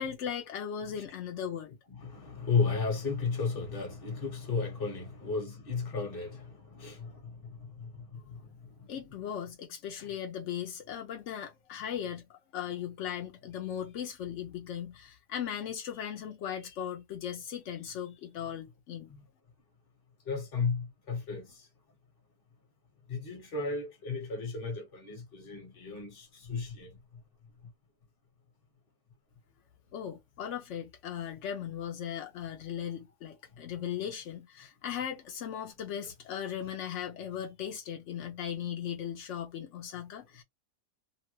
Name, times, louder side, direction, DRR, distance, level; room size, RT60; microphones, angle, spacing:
voice 1, 0.0-1.8 8.9-19.1 29.9-40.4, left 9 dB, 80° left, 0.6 m, -38 dB
voice 2, 1.9-8.5 8.8-8.9 10.0-10.1 19.1-19.2 20.3-21.7 23.1-27.0, left 4 dB, 40° left, 1.0 m, -34 dB
2.9 x 2.1 x 3.0 m
omnidirectional pair, 1.9 m